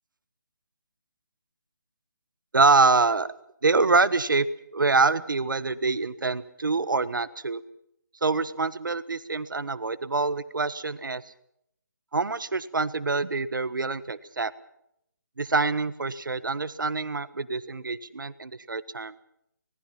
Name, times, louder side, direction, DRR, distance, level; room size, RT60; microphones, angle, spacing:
voice 1, 2.5-3.3 3.6-4.5 4.7-7.6 8.2-11.3 12.1-14.5 15.4-19.1, right 3 dB, 90° right, 14 dB, 1.4 m, -25 dB
25.5 x 19.5 x 5.8 m, 0.76 s
hypercardioid pair, 170°, 10 cm